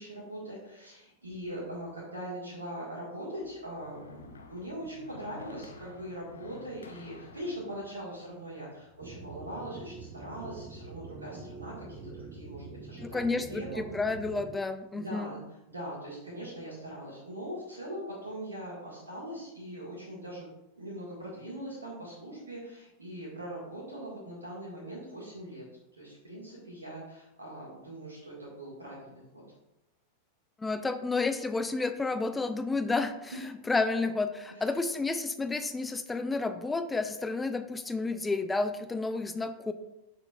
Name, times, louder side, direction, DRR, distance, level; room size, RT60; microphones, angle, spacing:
voice 1, 0.0-14.2 14.9-15.4 15.7-20.5 20.8-25.6 26.0-29.4 33.3-33.4 34.5-34.6, right 1 dB, 75° right, -6 dB, 1.7 m, -41 dB
sound 1, 3.3-9.5, left 4 dB, 70° left, 0.6 m, -52 dB
sound 2, 9.0-14.5, right 3 dB, 35° right, 0.8 m, -45 dB
voice 2, 13.0-15.3 30.6-33.3 33.7-39.7, left 3 dB, 10° left, 10 dB, 0.4 m, -31 dB
6.7 x 5.8 x 2.4 m, 0.91 s
figure-of-eight pair, 90°, 0 cm